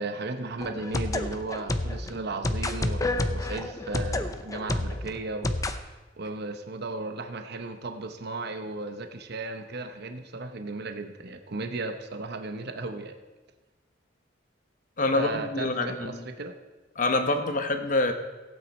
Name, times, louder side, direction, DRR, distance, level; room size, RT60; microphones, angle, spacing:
voice 1, 0.0-5.9 6.2-13.1 15.1-16.5, right 3 dB, 60° right, 6 dB, 0.9 m, -35 dB
sound 1, 0.6-5.8, left 1 dB, 20° left, 0.6 m, -29 dB
voice 2, 15.0-16.2 17.0-18.1, left 2 dB, 45° left, 7 dB, 1.0 m, -26 dB
16.5 x 8.9 x 4.3 m, 1.2 s
head